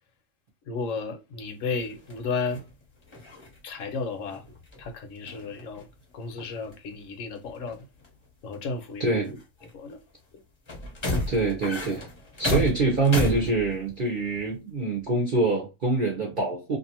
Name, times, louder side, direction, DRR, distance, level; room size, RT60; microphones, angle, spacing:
voice 1, 0.6-2.6 3.6-4.4 4.8-5.9 6.1-7.8 8.4-9.1 9.7-10.0, left 4 dB, 70° left, 1.1 m, -33 dB
sound 1, 1.7-4.9 5.2-6.1 6.4-7.0 7.4-8.1 8.5-8.6 9.3-9.9 10.7-14.0 14.3-14.5, left 1 dB, 30° left, 0.6 m, -33 dB
voice 2, 9.0-9.4 11.3-12.0 12.4-16.8, right 3 dB, 45° right, 0.8 m, -25 dB
2.6 x 2.4 x 2.8 m
omnidirectional pair, 1.4 m